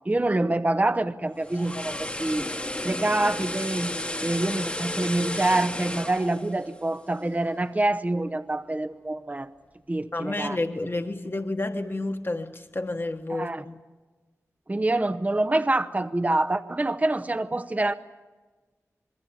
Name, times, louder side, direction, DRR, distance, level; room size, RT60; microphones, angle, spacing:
voice 1, 0.1-2.5 2.8-3.9 4.2-9.5 9.9-10.6 13.3-13.6 14.7-17.9, right 2 dB, 25° right, 11 dB, 0.8 m, -26 dB
sound 1, 1.3-7.5 7.8-8.0, left 1 dB, 20° left, 1.2 m, -33 dB
voice 2, 10.1-13.8, left 2 dB, 40° left, 5 dB, 1.4 m, -30 dB
27.0 x 21.5 x 7.3 m, 1.3 s
wide cardioid pair, 70°, 6 cm